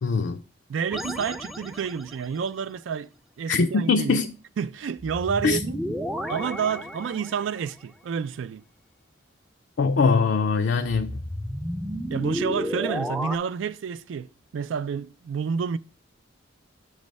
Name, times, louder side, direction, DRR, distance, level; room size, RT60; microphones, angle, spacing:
voice 1, 0.0-0.4 3.5-4.3 5.4-5.6 9.8-11.2, left 4 dB, 70° left, 0.4 m, -22 dB
voice 2, 0.7-3.1 3.4-4.2 4.6-5.8 6.3-8.6 12.1-15.8, right 6 dB, 90° right, 0.3 m, -29 dB
sound 1, 0.9-2.3 5.0-7.6 10.8-13.4, equal, ahead, 0.3 m, -32 dB
7.1 x 3.2 x 5.1 m
head